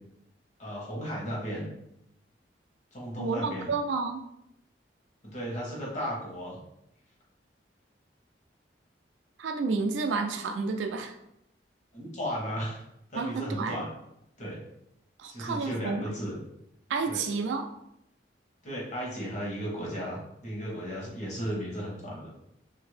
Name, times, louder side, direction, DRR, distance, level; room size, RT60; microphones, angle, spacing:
voice 1, 0.6-1.7 2.9-3.7 5.2-6.6 11.9-12.8 13.1-13.9 14.4-14.6 15.3-16.4 17.1-17.2 18.6-22.3, equal, 40° left, -4 dB, 1.1 m, -35 dB
voice 2, 3.2-4.2 9.4-11.1 13.1-13.8 15.2-16.1 16.9-17.7, right 4 dB, 80° right, 6 dB, 0.3 m, -30 dB
2.8 x 2.6 x 3.2 m, 0.78 s
head